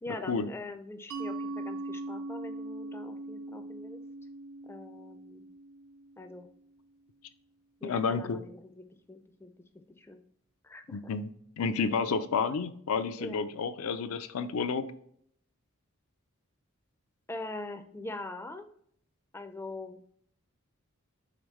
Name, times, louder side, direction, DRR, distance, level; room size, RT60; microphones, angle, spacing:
voice 1, 0.0-4.0 4.6-5.4 6.2-6.5 7.8-9.5 9.9-10.2 10.6-11.1 13.1-13.4 17.3-18.7 19.3-20.0, left 2 dB, 10° left, 7 dB, 0.4 m, -43 dB
Mallet percussion, 1.1-6.5, right 2 dB, 80° right, 0.4 m, -40 dB
voice 2, 7.8-8.4 10.9-11.3 11.6-14.9, left 5 dB, 80° left, 11 dB, 0.4 m, -30 dB
5.0 x 3.4 x 3.1 m, 0.66 s
head